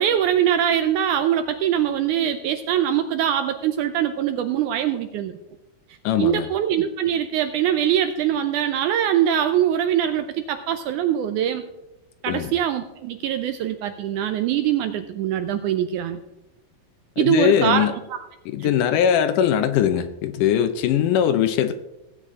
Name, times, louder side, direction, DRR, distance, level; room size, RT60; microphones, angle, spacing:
voice 1, 0.0-5.3 6.2-11.6 12.2-16.2 17.2-17.9 18.6-18.7, right 10 dB, 80° right, 8 dB, 1.8 m, -22 dB
voice 2, 6.0-6.5 12.3-12.5 17.2-17.9 18.5-21.7, left 9 dB, 80° left, 10 dB, 2.0 m, -21 dB
17.5 x 8.6 x 3.6 m, 0.94 s
omnidirectional pair, 4.0 m